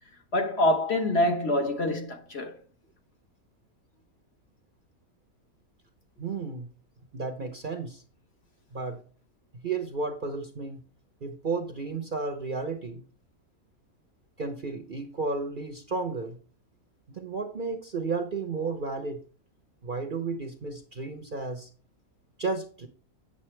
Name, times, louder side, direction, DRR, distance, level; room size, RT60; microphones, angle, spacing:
voice 1, 0.3-2.6, left 1 dB, 50° left, 1.4 m, -25 dB
voice 2, 6.2-6.7 7.1-8.0 8.7-9.0 9.6-10.8 11.2-13.0 14.4-16.4 17.1-19.2 19.8-21.7 22.4-22.9, right 4 dB, 45° right, 0.8 m, -33 dB
8.6 x 6.7 x 3.2 m
omnidirectional pair, 1.5 m